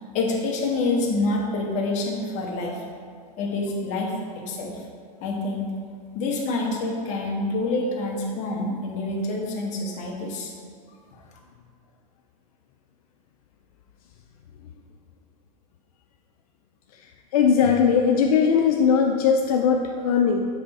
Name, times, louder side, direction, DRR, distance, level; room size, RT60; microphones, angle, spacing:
voice 1, 0.1-2.8 3.4-4.8 5.2-5.7 6.1-10.5, left 2 dB, 40° left, -1 dB, 1.2 m, -27 dB
voice 2, 17.3-20.5, left 6 dB, 75° left, 2 dB, 0.5 m, -19 dB
7.4 x 3.4 x 4.1 m, 2.1 s
supercardioid pair, 130°, 19 cm